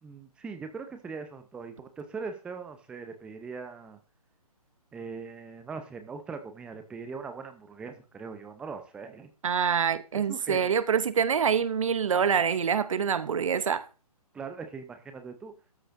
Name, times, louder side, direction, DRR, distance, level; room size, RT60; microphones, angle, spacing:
voice 1, 0.0-4.0 4.9-9.3 10.1-10.7 14.3-15.5, right 5 dB, 5° right, 0.6 m, -40 dB
voice 2, 9.4-13.9, right 7 dB, 55° right, 0.8 m, -26 dB
13.5 x 9.8 x 2.6 m
figure-of-eight pair, 140°, 20 cm